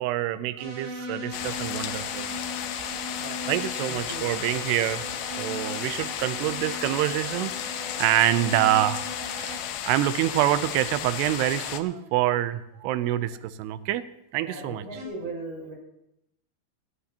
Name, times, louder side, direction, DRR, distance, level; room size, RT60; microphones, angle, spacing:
voice 1, 0.0-2.3 3.5-5.0 5.4-9.0 9.4-9.6 9.9-14.0 14.3-14.8, right 14 dB, 90° right, 2.7 m, -26 dB
sound 1, 0.6-9.6 14.9-15.0, left 1 dB, 70° right, 5.7 m, -38 dB
Hard rain and thunder, 1.3-11.8, left 10 dB, 80° left, 2.0 m, -34 dB
voice 2, 3.9-4.2 14.4-15.7, right 2 dB, 40° right, 6.9 m, -38 dB
18.0 x 15.5 x 2.8 m
omnidirectional pair, 4.7 m